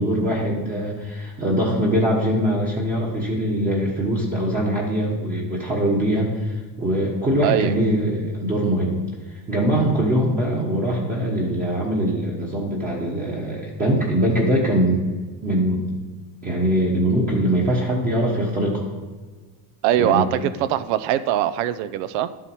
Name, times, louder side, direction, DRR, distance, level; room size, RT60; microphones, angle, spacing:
voice 1, 0.0-8.9 9.5-15.0 15.4-15.8 16.4-18.9 20.0-20.3, right 1 dB, 20° right, -3 dB, 1.2 m, -22 dB
voice 2, 7.4-7.7 19.8-22.3, right 12 dB, 70° right, 13 dB, 0.7 m, -22 dB
11.5 x 7.5 x 4.6 m, 1.4 s
cardioid pair, 165°, 43 cm